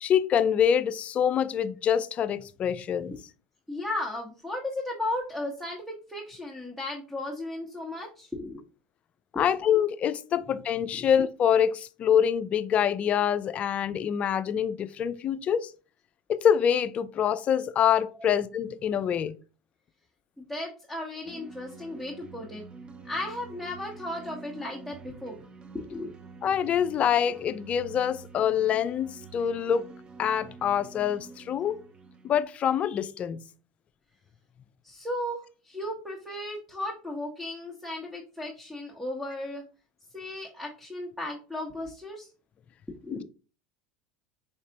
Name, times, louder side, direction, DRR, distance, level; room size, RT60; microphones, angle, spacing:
voice 1, 0.0-3.1 9.3-15.7 16.3-19.4 26.4-29.9 30.2-31.8 32.2-33.4, left 8 dB, 40° left, 0.4 m, -25 dB
voice 2, 3.7-8.6 9.3-9.4 11.0-11.1 18.2-18.3 20.4-22.6 23.0-25.4 25.7-26.1 34.8-39.6 40.1-42.3 43.0-43.2, left 1 dB, 5° right, 1.0 m, -35 dB
sound 1, 21.2-32.4, right 4 dB, 30° right, 0.5 m, -47 dB
4.8 x 3.3 x 2.8 m
supercardioid pair, 105°, 4 cm